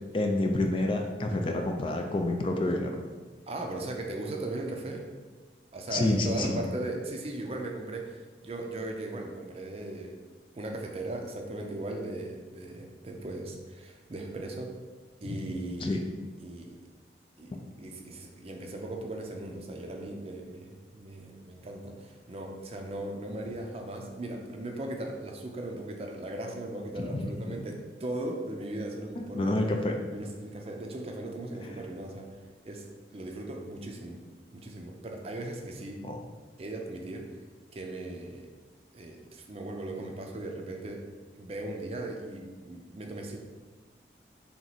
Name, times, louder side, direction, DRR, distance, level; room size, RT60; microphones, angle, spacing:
voice 1, 0.1-3.0 5.9-6.6 15.2-15.4 15.8-16.0 27.0-27.3 29.2-29.9 36.0-36.2, left 2 dB, 30° left, 3 dB, 0.3 m, -28 dB
voice 2, 3.5-5.1 5.7-10.2 10.6-14.8 15.2-16.0 16.4-16.8 17.4-29.6 30.1-32.4 32.6-34.2 34.5-36.0 36.6-37.3 37.7-38.5 38.9-41.0 41.4-43.4, right 2 dB, 35° right, 2 dB, 0.5 m, -38 dB
3.5 x 3.0 x 4.0 m, 1.3 s
head